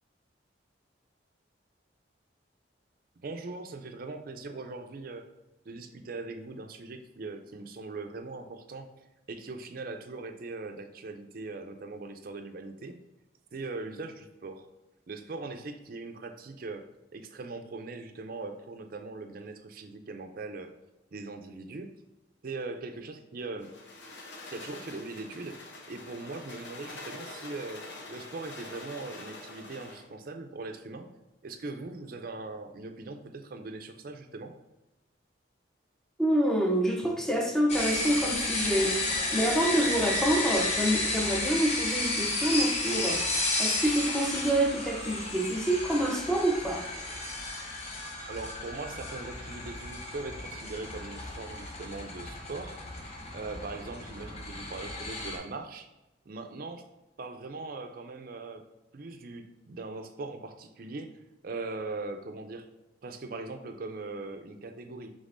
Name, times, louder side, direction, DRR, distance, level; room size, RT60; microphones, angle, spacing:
voice 1, 3.2-5.3 5.7-8.9 9.3-13.0 13.5-14.7 15.1-20.7 21.1-21.9 22.4-23.8 24.5-31.1 31.4-34.6 48.2-52.8 53.3-55.9 56.3-56.9 57.2-58.7 58.9-61.2 61.4-62.7 63.0-65.1, right 3 dB, 50° right, 6 dB, 0.4 m, -40 dB
sound 1, 23.6-30.1, left 2 dB, 70° left, 0.7 m, -45 dB
voice 2, 36.2-39.0 39.3-43.2 43.6-46.9, right 1 dB, 5° left, 1 dB, 0.5 m, -27 dB
sound 2, 37.7-55.4, left 2 dB, 35° left, 0.7 m, -32 dB
5.2 x 3.4 x 2.5 m, 1.0 s
head